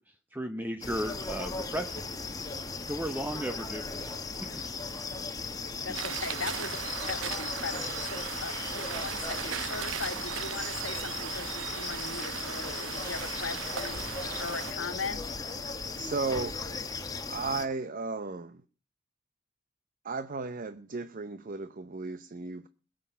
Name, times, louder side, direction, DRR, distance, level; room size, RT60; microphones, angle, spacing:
voice 1, 0.0-2.1 2.8-4.8, equal, 10° right, 0.8 m, -36 dB
sound 1, 0.8-17.7, left 4 dB, 20° left, 1.4 m, -37 dB
voice 2, 5.8-15.2, left 4 dB, 80° left, 1.6 m, -39 dB
sound 2, 5.9-14.7, right 9 dB, 80° right, 0.6 m, -38 dB
voice 3, 16.0-16.6 17.3-18.6 20.0-22.7, right 3 dB, 45° right, 0.8 m, -34 dB
21.5 x 7.9 x 5.6 m
head